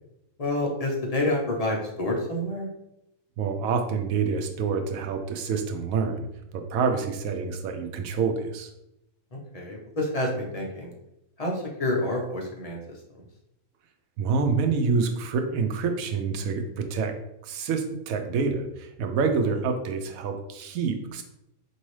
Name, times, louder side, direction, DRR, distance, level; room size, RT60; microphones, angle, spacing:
voice 1, 0.4-2.7 9.3-10.9 11.4-12.8 13.1-13.2, left 1 dB, 35° left, -1 dB, 0.7 m, -28 dB
voice 2, 3.4-6.3 6.5-8.7 14.2-17.1 17.4-21.2, right 5 dB, 85° right, 6 dB, 1.0 m, -27 dB
4.5 x 2.8 x 3.1 m, 0.84 s
omnidirectional pair, 1.4 m